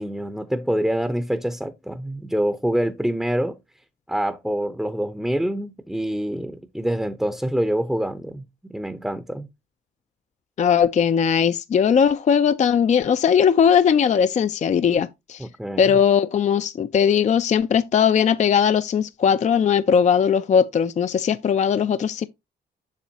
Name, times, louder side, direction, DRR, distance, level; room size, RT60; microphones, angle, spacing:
voice 1, 0.0-3.6 4.1-8.4 8.7-9.5 15.4-15.9, equal, ahead, 0.6 m, -26 dB
voice 2, 10.6-15.5 15.8-22.3, left 7 dB, 35° left, 0.4 m, -19 dB
7.3 x 6.6 x 2.8 m
cardioid pair, 90°, 20 cm